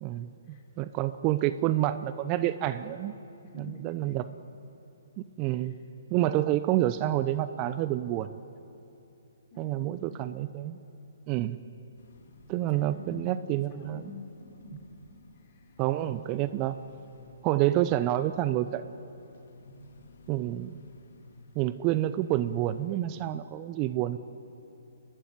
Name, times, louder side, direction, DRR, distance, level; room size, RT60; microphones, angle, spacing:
voice 1, 0.0-3.1 3.5-4.3 5.2-5.8 6.1-8.3 9.6-10.8 11.3-11.6 12.5-14.1 15.8-16.8 17.4-19.0 20.3-20.7 21.6-24.2, right 14 dB, 30° right, 13 dB, 0.6 m, -28 dB
voice 2, 3.5-4.2 5.4-5.7 9.5-10.2 12.7-13.4 13.7-15.7, left 3 dB, 35° left, 2 dB, 4.3 m, -48 dB
sound 1, 12.0-22.9, left 2 dB, 60° left, 2.3 m, -55 dB
29.5 x 12.5 x 9.6 m, 2.9 s
figure-of-eight pair, 130°, 0 cm